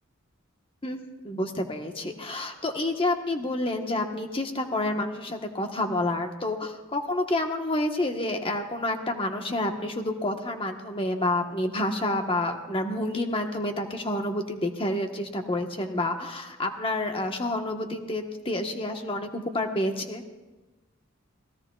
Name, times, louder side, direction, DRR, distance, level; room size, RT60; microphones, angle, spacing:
voice 1, 0.8-20.2, left 1 dB, 25° left, 4 dB, 1.2 m, -29 dB
27.0 x 17.0 x 2.4 m, 1.2 s
head